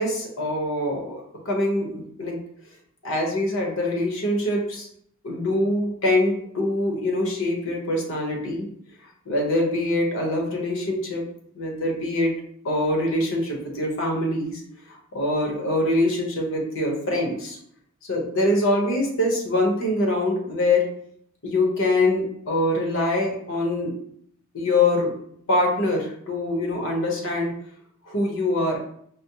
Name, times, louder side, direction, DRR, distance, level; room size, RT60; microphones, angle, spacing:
voice 1, 0.0-2.4 3.0-4.9 5.2-8.7 9.3-11.2 11.5-12.3 12.6-14.6 15.1-17.6 18.1-20.8 21.4-23.9 24.5-25.1 25.5-27.5 28.1-28.8, left 1 dB, 65° left, 0 dB, 1.0 m, -24 dB
5.0 x 2.0 x 2.9 m, 0.67 s
head